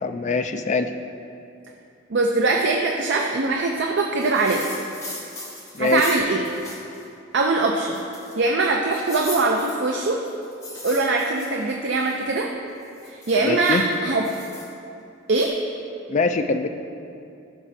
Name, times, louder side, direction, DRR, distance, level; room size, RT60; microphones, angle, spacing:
voice 1, 0.0-0.9 5.7-6.0 13.4-13.8 16.1-16.7, left 3 dB, 35° left, 7 dB, 0.4 m, -23 dB
voice 2, 2.1-4.7 5.8-6.5 7.3-8.0 8.4-10.3 10.8-12.5 13.0-14.3 15.3-15.6, right 3 dB, 60° right, 1 dB, 0.5 m, -22 dB
sound 1, 4.2-7.0 7.4-7.5 7.9-8.5 8.9-12.1 12.7-14.7 15.4-15.5, left 2 dB, 15° left, 1.2 m, -38 dB
14.0 x 6.1 x 2.7 m, 2.6 s
head